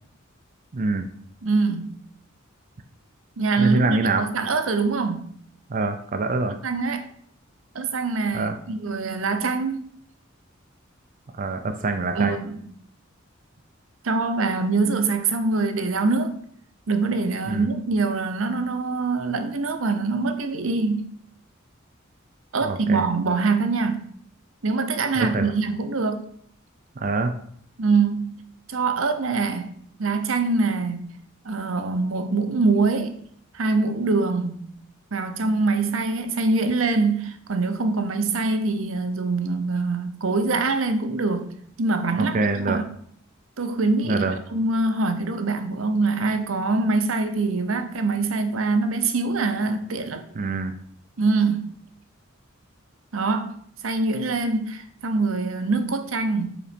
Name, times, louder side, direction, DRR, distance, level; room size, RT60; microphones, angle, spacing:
voice 1, 0.7-1.1 3.6-4.3 5.7-6.6 8.3-8.6 11.4-12.4 17.5-17.7 22.6-23.1 25.2-25.5 27.0-27.3 42.2-42.8 44.1-44.4 50.4-50.7, right 3 dB, 40° right, 0.5 m, -25 dB
voice 2, 1.4-2.0 3.4-5.3 6.6-7.1 7.7-9.9 12.1-12.6 14.0-16.4 16.9-21.1 22.5-24.0 24.6-26.2 27.8-28.4 28.7-31.1 31.4-33.2 33.5-34.7 35.1-41.5 41.8-42.3 42.7-42.8 43.6-50.2 51.2-51.8 53.1-56.5, right 3 dB, 75° right, 0.7 m, -24 dB
5.0 x 4.0 x 5.1 m
head